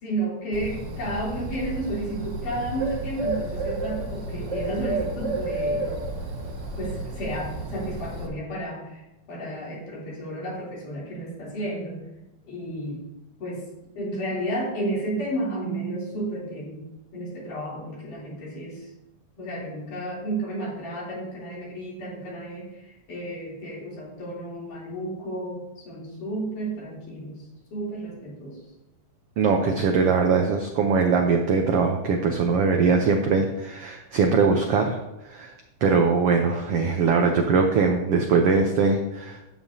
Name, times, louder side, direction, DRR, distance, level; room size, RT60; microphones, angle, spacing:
voice 1, 0.0-5.8 6.8-12.1 12.4-13.0 13.4-13.7 13.9-16.9 17.1-18.9 19.4-27.5 27.7-28.6, right 1 dB, 70° left, -5 dB, 4.8 m, -32 dB
Bird, 0.5-8.3, right 2 dB, 45° right, 1.5 m, -31 dB
voice 2, 29.4-35.0 35.2-35.5 35.8-39.5, right 5 dB, 85° right, 3 dB, 1.3 m, -21 dB
12.0 x 9.2 x 2.8 m, 0.96 s
omnidirectional pair, 3.8 m